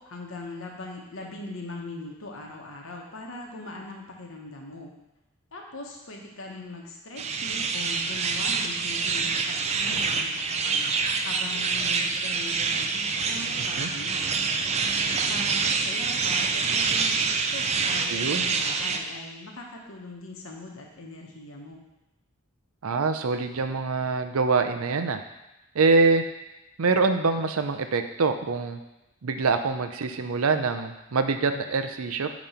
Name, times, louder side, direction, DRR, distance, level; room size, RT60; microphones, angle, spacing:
voice 1, 0.0-4.9 5.5-14.3 14.9-21.8, left 2 dB, 70° left, 0 dB, 1.2 m, -41 dB
sound 1, 7.2-19.0, right 4 dB, 30° right, 0.4 m, -26 dB
voice 2, 18.1-18.5 22.8-25.2 25.7-26.2 26.8-28.8 29.2-32.3, right 4 dB, 85° right, 8 dB, 0.6 m, -24 dB
8.7 x 3.1 x 5.6 m, 0.96 s
head